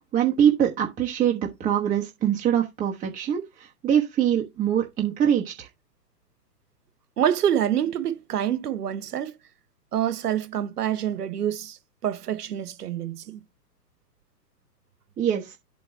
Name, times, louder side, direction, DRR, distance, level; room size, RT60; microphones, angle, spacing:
voice 1, 0.0-5.7 15.2-15.6, right 9 dB, 15° right, 1.2 m, -24 dB
voice 2, 7.2-9.4 9.9-13.4, right 10 dB, 65° right, 1.2 m, -26 dB
8.3 x 3.5 x 5.5 m
hypercardioid pair, 125°, 50 cm